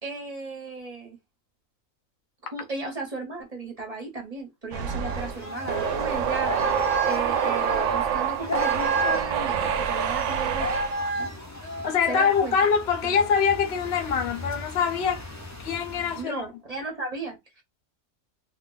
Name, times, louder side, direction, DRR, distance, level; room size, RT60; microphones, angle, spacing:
voice 1, 0.0-1.2 2.4-6.6 7.0-10.7 11.2-11.3 12.1-12.5 13.0-13.3 16.2-17.6, right 3 dB, 35° right, 0.7 m, -35 dB
sound 1, 4.7-11.0, right 8 dB, 70° right, 0.8 m, -26 dB
sound 2, 5.0-16.2, right 1 dB, 25° left, 0.4 m, -33 dB
voice 2, 11.8-15.2 15.6-16.5, left 6 dB, 55° left, 0.8 m, -24 dB
2.5 x 2.2 x 3.8 m
omnidirectional pair, 1.5 m